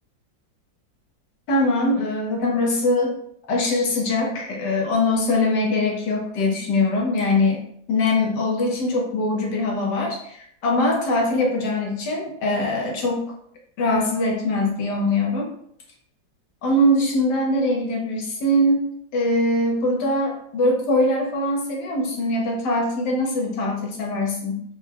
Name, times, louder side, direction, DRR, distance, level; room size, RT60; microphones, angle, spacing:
voice 1, 1.5-3.1 3.5-7.6 7.9-13.2 13.8-15.5 16.6-24.6, left 1 dB, 70° left, 0 dB, 1.3 m, -22 dB
4.5 x 2.2 x 3.3 m, 0.69 s
omnidirectional pair, 2.1 m